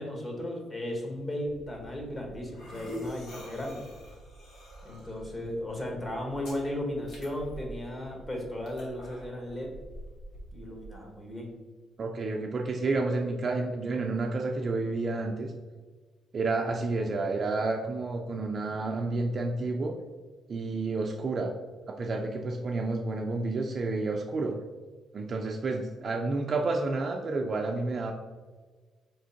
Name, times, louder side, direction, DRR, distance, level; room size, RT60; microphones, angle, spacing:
voice 1, 0.0-3.8 4.8-9.7 10.5-11.5, left 1 dB, 30° left, 1 dB, 1.1 m, -35 dB
sound 1, 1.5-11.0, equal, 80° left, 1.1 m, -45 dB
voice 2, 12.0-15.5 16.3-19.9 20.5-21.5 22.0-24.5 25.1-28.1, right 3 dB, 45° right, 1 dB, 0.4 m, -30 dB
4.3 x 3.5 x 2.7 m, 1.4 s
cardioid pair, 90°, 0 cm